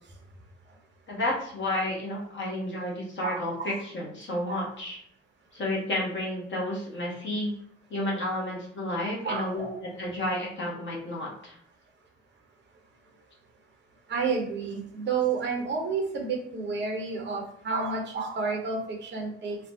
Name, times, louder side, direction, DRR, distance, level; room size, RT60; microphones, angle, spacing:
voice 1, 1.1-5.0 5.5-7.5 7.9-9.7 10.0-11.6, left 1 dB, 35° left, -3 dB, 1.1 m, -31 dB
voice 2, 3.2-3.7 4.5-4.7 9.2-9.8 14.1-19.6, right 4 dB, 35° right, 1 dB, 0.8 m, -30 dB
3.2 x 2.1 x 2.7 m, 0.63 s
figure-of-eight pair, 40°, 32 cm